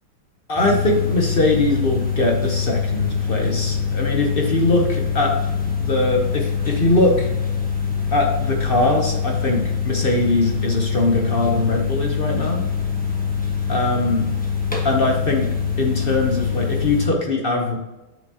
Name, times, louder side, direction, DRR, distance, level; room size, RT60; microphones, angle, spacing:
voice 1, 0.5-5.3 5.6-7.3 8.1-12.6 13.7-14.2 14.8-15.5 15.8-17.8, left 2 dB, 55° left, 1 dB, 0.6 m, -21 dB
sound 1, 0.6-17.1, left 6 dB, 5° left, 0.7 m, -24 dB
7.1 x 6.2 x 2.8 m, 1.1 s
omnidirectional pair, 2.2 m